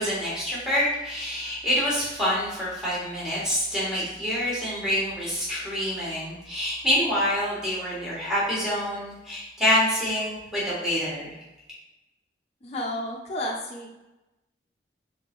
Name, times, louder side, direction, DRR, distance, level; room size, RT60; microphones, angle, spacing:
voice 1, 0.0-11.3, equal, 5° right, -8 dB, 1.3 m, -26 dB
voice 2, 12.6-14.0, left 1 dB, 35° left, -1 dB, 0.4 m, -32 dB
3.6 x 3.2 x 3.0 m, 0.99 s
head